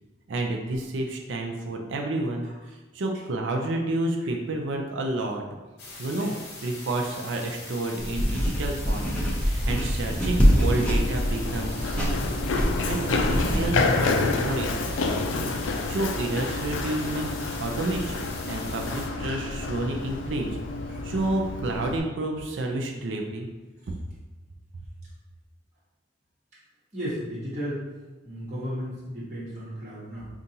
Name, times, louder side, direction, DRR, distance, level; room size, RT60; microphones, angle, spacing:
voice 1, 0.3-2.5 2.9-5.4 6.0-6.3 6.6-12.4 12.8-17.3 17.6-20.5 21.0-23.5, right 2 dB, 70° right, 2 dB, 0.5 m, -30 dB
sound 1, 5.8-19.1, left 2 dB, 50° left, 0.9 m, -42 dB
sound 2, 8.0-13.7, equal, 5° left, 0.5 m, -25 dB
voice 2, 9.4-9.9 20.9-21.0 26.9-27.8 28.2-30.3, equal, 35° right, -10 dB, 1.1 m, -35 dB
Run, 10.4-22.0, left 3 dB, 70° left, 0.3 m, -29 dB
5.2 x 2.4 x 2.8 m, 1.2 s
head